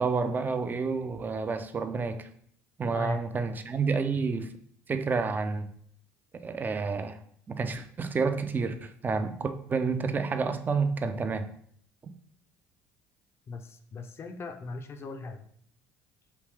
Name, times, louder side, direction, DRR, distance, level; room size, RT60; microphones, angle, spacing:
voice 1, 0.0-2.3 2.8-4.5 4.9-5.7 6.3-7.2 7.5-11.5 12.0-12.1, right 4 dB, 25° right, 9 dB, 0.4 m, -29 dB
voice 2, 2.9-3.2 13.5-15.4, left 3 dB, 40° left, 6 dB, 0.5 m, -38 dB
3.2 x 2.7 x 3.2 m, 0.63 s
supercardioid pair, 75°, 7 cm